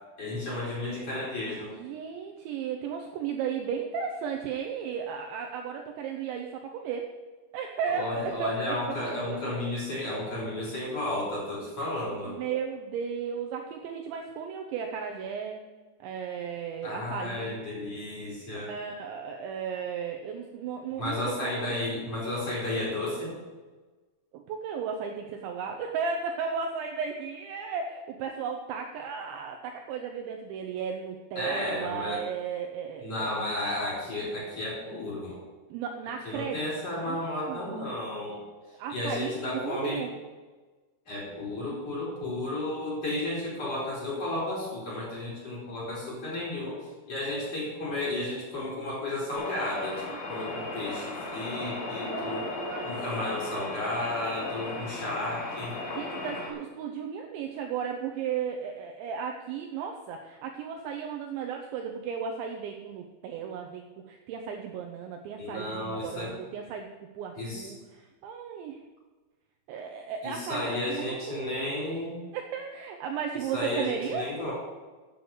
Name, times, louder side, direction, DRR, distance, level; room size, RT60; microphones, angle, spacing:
voice 1, 0.2-1.7 7.9-12.3 16.8-18.7 21.0-23.4 31.4-32.2 33.0-35.4 36.3-38.4 38.9-40.1 41.1-50.0 50.3-52.4 52.8-55.8 65.4-66.3 67.4-67.7 70.2-72.2 73.3-74.5, left 1 dB, 30° left, -5 dB, 5.1 m, -33 dB
voice 2, 1.6-7.1 7.5-8.5 8.9-9.6 12.3-15.6 16.0-17.6 18.5-21.9 24.3-33.3 35.7-36.6 36.9-37.2 37.5-37.8 38.8-40.1 52.1-52.9 55.9-66.9 67.1-68.8 69.7-71.7 72.3-74.3, right 7 dB, 80° right, 2 dB, 2.8 m, -35 dB
sound 1, 49.3-56.5, left 2 dB, 55° left, 3.1 m, -36 dB
8.8 x 8.0 x 7.9 m, 1.3 s
omnidirectional pair, 5.9 m